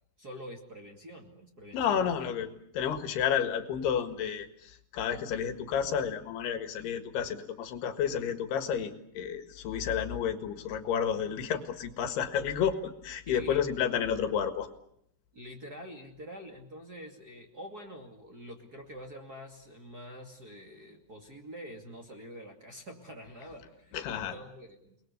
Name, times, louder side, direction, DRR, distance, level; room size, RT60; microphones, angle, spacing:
voice 1, 0.2-2.3 13.2-13.6 15.3-25.0, equal, 30° right, 1 dB, 2.3 m, -46 dB
voice 2, 1.7-2.5 2.8-14.7 23.9-24.4, left 8 dB, 75° left, 9 dB, 3.7 m, -31 dB
29.5 x 21.0 x 8.2 m, 0.71 s
omnidirectional pair, 4.7 m